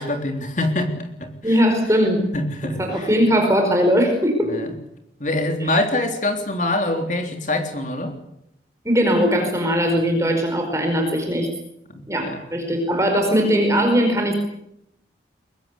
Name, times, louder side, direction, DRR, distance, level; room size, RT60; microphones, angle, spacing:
voice 1, 0.0-1.6 2.3-3.1 4.5-4.7 5.2-8.2 11.9-12.7, left 1 dB, 45° left, 5 dB, 3.5 m, -25 dB
voice 2, 1.4-2.3 2.8-4.6 5.6-5.7 8.8-11.5 12.1-14.3, equal, 15° right, 4 dB, 4.9 m, -19 dB
23.5 x 22.5 x 8.4 m, 0.79 s
head